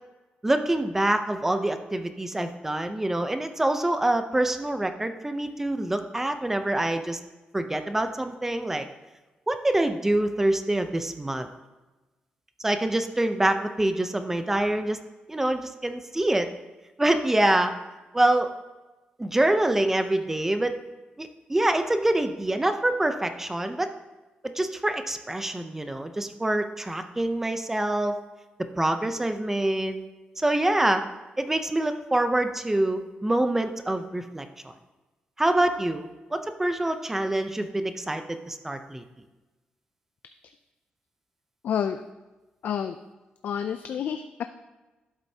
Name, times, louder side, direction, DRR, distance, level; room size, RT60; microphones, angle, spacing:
voice 1, 0.4-7.2 7.5-8.9 9.5-11.5 12.6-15.0 15.3-16.5 17.0-17.7 18.1-18.5 19.2-20.7 21.2-23.9 24.4-28.1 28.7-30.0 30.4-31.0 31.4-34.7 35.4-39.0, right 1 dB, 10° right, 8 dB, 0.6 m, -25 dB
voice 2, 41.6-42.0 42.6-43.0 43.4-44.4, left 8 dB, 70° left, 8 dB, 0.4 m, -29 dB
12.0 x 7.9 x 2.8 m, 1.2 s
wide cardioid pair, 145°, 3 cm